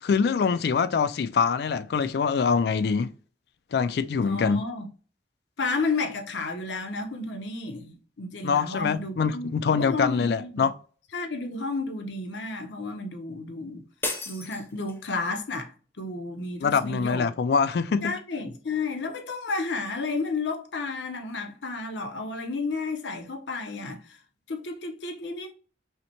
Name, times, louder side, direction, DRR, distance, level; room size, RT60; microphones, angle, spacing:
voice 1, 0.0-3.1 3.7-4.6 8.4-10.7 16.6-18.2, left 5 dB, 60° left, 0.3 m, -24 dB
voice 2, 4.2-4.9 5.6-10.7 11.1-13.8 14.3-17.3 18.0-24.2 24.5-25.5, left 3 dB, 80° left, 0.7 m, -32 dB
sound 1, 14.0-15.3, left 2 dB, 10° left, 0.6 m, -34 dB
5.6 x 2.1 x 2.9 m
head